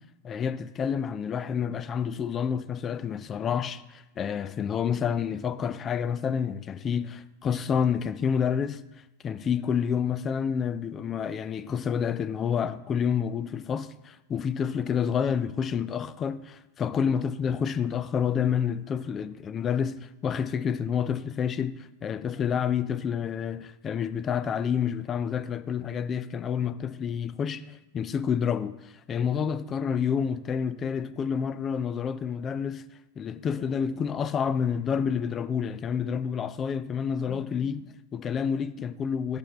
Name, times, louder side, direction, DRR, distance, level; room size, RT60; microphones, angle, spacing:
voice 1, 0.2-8.8 9.2-32.9 33.2-39.4, left 7 dB, 25° left, 0.4 m, -29 dB
11.0 x 4.5 x 4.2 m
figure-of-eight pair, 90°, 0 cm